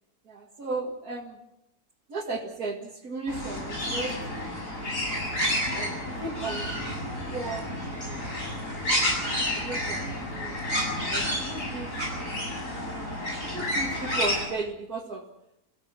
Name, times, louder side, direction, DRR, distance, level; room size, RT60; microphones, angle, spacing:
voice 1, 0.3-1.4 2.1-4.2 5.7-6.8 7.1-8.3 9.4-10.6 11.1-11.9 12.7-12.8 13.4-15.3, right 3 dB, 70° right, -2 dB, 2.5 m, -36 dB
sound 1, 3.3-14.4, equal, 55° left, 7.7 m, -30 dB
28.5 x 16.5 x 6.3 m, 0.86 s
omnidirectional pair, 1.6 m